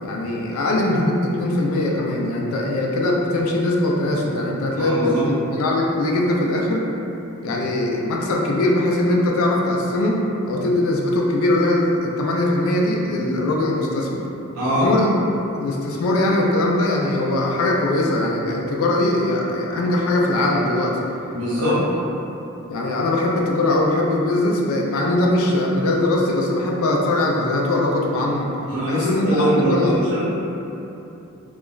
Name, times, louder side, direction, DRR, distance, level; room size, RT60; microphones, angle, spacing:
voice 1, 0.0-6.8 7.4-10.2 10.4-14.2 14.8-15.1 15.5-21.0 21.6-21.8 22.7-28.5 28.8-29.9, left 1 dB, 75° left, -2 dB, 0.4 m, -21 dB
voice 2, 4.8-5.3 14.5-14.9 21.3-21.8 28.7-30.2, right 1 dB, 85° right, -10 dB, 0.6 m, -22 dB
2.9 x 2.3 x 2.3 m, 2.9 s
head